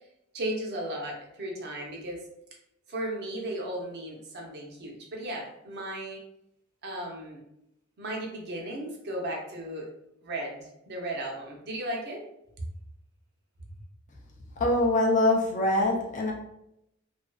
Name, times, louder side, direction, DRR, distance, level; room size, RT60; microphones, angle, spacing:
voice 1, 0.3-2.2 2.9-6.2 6.8-7.4 8.0-9.9 10.2-12.2 12.6-12.7, right 1 dB, 50° right, -1 dB, 0.6 m, -35 dB
voice 2, 14.6-16.3, left 1 dB, 35° left, 0 dB, 0.4 m, -24 dB
2.4 x 2.3 x 2.2 m, 0.81 s
head